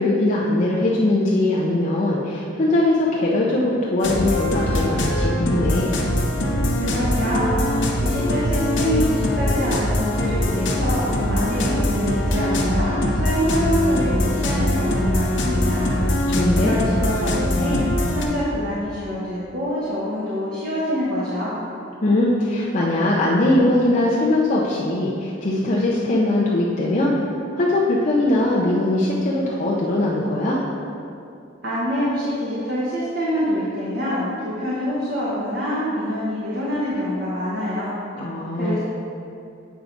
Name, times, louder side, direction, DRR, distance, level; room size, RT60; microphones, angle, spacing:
voice 1, 0.0-5.9 16.3-16.8 22.0-27.1 27.5-30.6 38.1-38.8, left 1 dB, 40° left, -5 dB, 0.6 m, -21 dB
sound 1, 4.0-18.3, left 1 dB, 75° left, 0.9 m, -22 dB
voice 2, 6.7-7.6 8.0-15.9 16.5-17.8 18.1-21.5 31.6-38.0 38.6-38.8, equal, 55° right, -8 dB, 1.2 m, -25 dB
8.1 x 4.6 x 3.9 m, 2.6 s
head